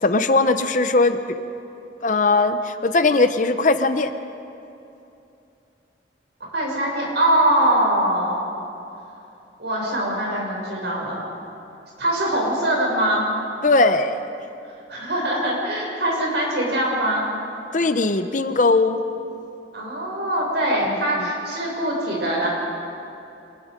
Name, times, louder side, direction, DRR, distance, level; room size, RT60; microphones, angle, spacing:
voice 1, 0.0-1.2 2.0-4.1 13.6-14.2 17.7-19.0 21.2-21.3, left 3 dB, 45° left, 10 dB, 0.8 m, -19 dB
voice 2, 6.4-8.5 9.6-11.2 12.0-13.3 14.9-17.3 19.7-22.5, right 1 dB, 70° right, -2 dB, 6.3 m, -22 dB
26.0 x 20.5 x 5.2 m, 2.8 s
head